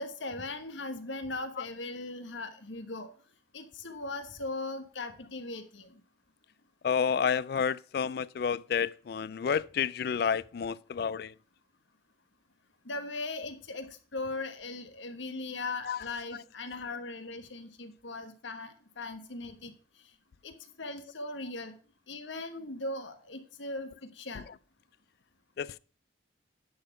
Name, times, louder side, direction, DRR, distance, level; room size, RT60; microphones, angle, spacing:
voice 1, 0.0-3.1 3.5-5.9 12.8-19.7 20.4-21.7 22.1-24.4, left 2 dB, 80° left, 1.2 m, -39 dB
voice 2, 6.8-11.3 15.8-16.1 16.3-16.4 24.5-24.6 25.6-25.8, left 7 dB, 55° left, 0.3 m, -30 dB
10.0 x 4.2 x 5.7 m
head